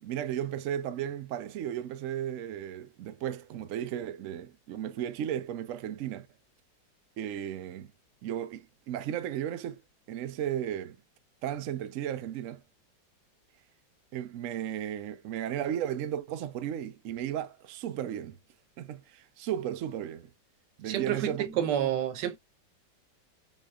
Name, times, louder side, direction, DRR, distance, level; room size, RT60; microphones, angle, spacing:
voice 1, 0.0-6.3 7.2-7.9 8.2-9.8 10.1-11.0 11.4-12.6 14.1-18.4 18.8-20.3 20.8-21.6, right 10 dB, 90° right, 0.7 m, -35 dB
voice 2, 20.8-22.4, right 10 dB, 70° right, 1.3 m, -29 dB
5.5 x 3.2 x 2.3 m
omnidirectional pair, 2.0 m